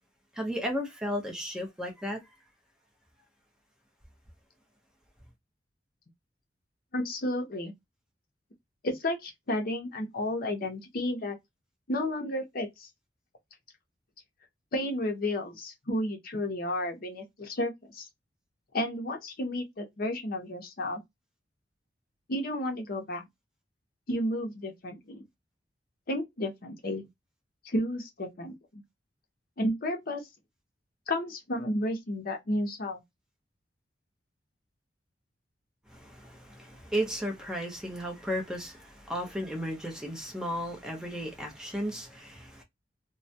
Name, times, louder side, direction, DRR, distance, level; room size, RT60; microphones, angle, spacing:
voice 1, 0.3-2.2 35.9-42.6, equal, 5° right, 0.6 m, -34 dB
voice 2, 6.9-7.7 8.8-11.4 11.9-12.9 14.7-18.1 18.7-21.0 22.3-23.3 24.1-25.2 26.1-27.0 27.6-28.8 29.6-30.2 31.1-33.0, left 1 dB, 55° left, 0.6 m, -32 dB
2.2 x 2.1 x 2.6 m
head